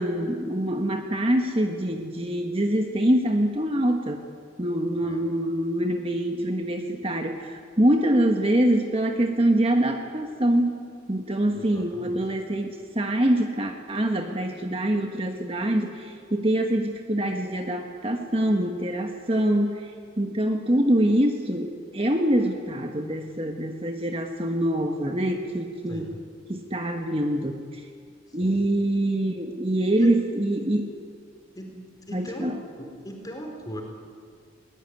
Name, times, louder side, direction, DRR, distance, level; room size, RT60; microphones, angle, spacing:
voice 1, 0.0-4.2 4.6-10.8 11.1-19.9 20.2-26.1 26.5-27.8 28.3-30.9 32.1-32.5, right 1 dB, 30° right, 3 dB, 1.3 m, -24 dB
voice 2, 11.5-12.3 25.9-26.2 28.3-28.7 29.9-30.1 31.5-32.5 32.8-33.8, equal, 20° left, 1 dB, 4.3 m, -40 dB
21.5 x 19.5 x 9.6 m, 2.1 s
head